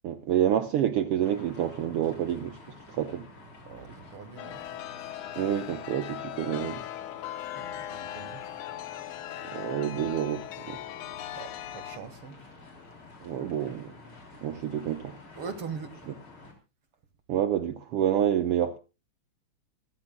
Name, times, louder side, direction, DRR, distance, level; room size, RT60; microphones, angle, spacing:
voice 1, 0.0-2.6 2.9-3.3 5.4-6.8 9.4-10.8 13.2-13.9 14.4-15.2 17.3-18.8, right 10 dB, 70° right, 1.5 m, -28 dB
sound 1, 1.2-16.5, left 3 dB, 40° left, 4.2 m, -50 dB
voice 2, 3.7-4.6 7.5-8.5 11.1-12.4 14.2-14.5 15.4-16.0, right 6 dB, 50° right, 2.0 m, -42 dB
Chime, 4.4-12.0, left 12 dB, 80° left, 2.5 m, -39 dB
26.0 x 14.0 x 2.2 m
omnidirectional pair, 3.5 m